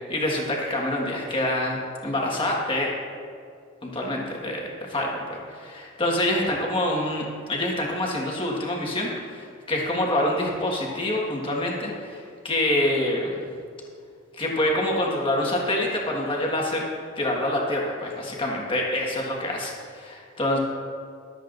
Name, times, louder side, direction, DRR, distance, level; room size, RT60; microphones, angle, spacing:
voice 1, 0.1-2.9 3.8-13.4 14.4-16.8 17.2-20.6, left 1 dB, 25° left, -2 dB, 1.7 m, -26 dB
23.5 x 8.0 x 2.6 m, 2.3 s
head